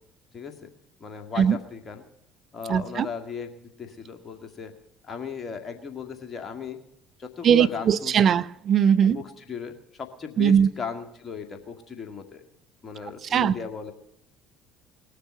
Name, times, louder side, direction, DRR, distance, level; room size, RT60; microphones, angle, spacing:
voice 1, 0.3-0.7 1.0-2.0 2.5-4.7 5.1-6.8 7.2-8.3 9.1-12.4 12.8-13.9, left 6 dB, 35° left, 2.1 m, -37 dB
voice 2, 2.7-3.1 7.4-9.2 10.4-10.7 13.3-13.5, right 8 dB, 50° right, 0.6 m, -20 dB
19.5 x 6.8 x 9.5 m
hypercardioid pair, 60°, 0 cm